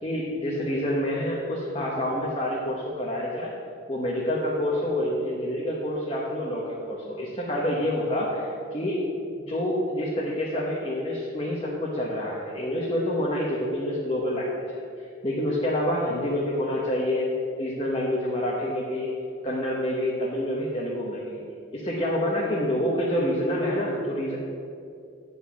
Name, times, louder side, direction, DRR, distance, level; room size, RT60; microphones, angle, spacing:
voice 1, 0.0-3.5 3.9-9.0 9.3-17.3 17.6-19.1 19.4-21.4 21.7-24.4, left 1 dB, 25° left, -5 dB, 1.1 m, -27 dB
9.8 x 5.0 x 6.9 m, 2.5 s
head